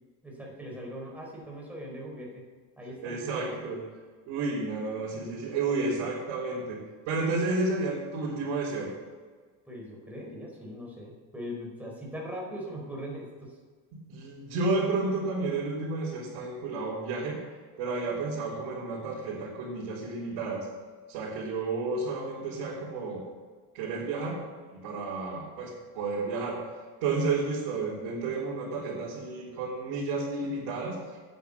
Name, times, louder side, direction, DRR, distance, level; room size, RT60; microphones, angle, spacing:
voice 1, 0.2-2.4 2.8-3.4 9.7-13.6, equal, 5° right, -3 dB, 4.6 m, -40 dB
voice 2, 3.0-3.8 4.3-6.8 7.1-8.9 14.1-17.4 17.8-20.7 21.1-23.2 23.7-24.4 24.8-26.6 27.0-31.2, right 3 dB, 75° right, -8 dB, 3.8 m, -31 dB
9.6 x 9.3 x 7.0 m, 1.5 s
cardioid pair, 120°, 40 cm